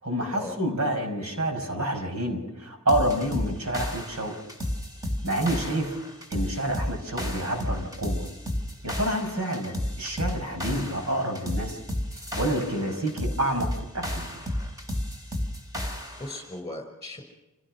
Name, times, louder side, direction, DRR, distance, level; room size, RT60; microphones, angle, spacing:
voice 1, 0.0-4.3 5.2-5.9 6.3-8.3 8.8-11.8 12.3-14.3, right 1 dB, 70° right, 4 dB, 5.1 m, -28 dB
sound 1, 2.9-16.5, left 1 dB, 15° right, 3.5 m, -32 dB
voice 2, 15.9-17.2, left 2 dB, 20° left, 6 dB, 5.8 m, -38 dB
27.5 x 16.0 x 6.1 m, 1.0 s
head